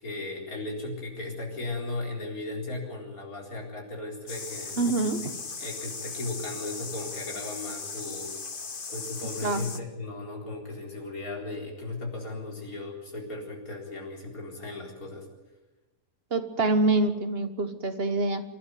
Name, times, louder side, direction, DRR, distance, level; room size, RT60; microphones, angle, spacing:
voice 1, 0.0-5.1 5.6-8.3 8.9-15.3, left 2 dB, 80° left, 0 dB, 4.6 m, -36 dB
sound 1, 4.3-9.8, left 4 dB, 40° left, 1.4 m, -38 dB
voice 2, 4.8-5.3 9.2-9.6 16.3-18.4, right 2 dB, 45° right, 9 dB, 1.6 m, -26 dB
26.0 x 12.0 x 9.4 m, 1.1 s
omnidirectional pair, 1.5 m